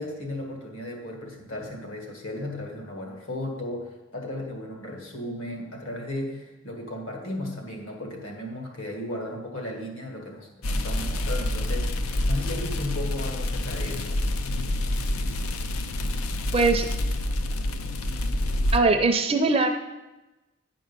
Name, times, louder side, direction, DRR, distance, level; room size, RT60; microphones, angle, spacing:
voice 1, 0.0-14.2, left 1 dB, 70° left, 1 dB, 1.8 m, -35 dB
sound 1, 10.6-18.8, left 1 dB, 85° left, 0.5 m, -27 dB
voice 2, 16.5-16.9 18.7-19.7, right 3 dB, 25° right, 6 dB, 0.5 m, -21 dB
9.5 x 5.2 x 5.3 m, 1.0 s
head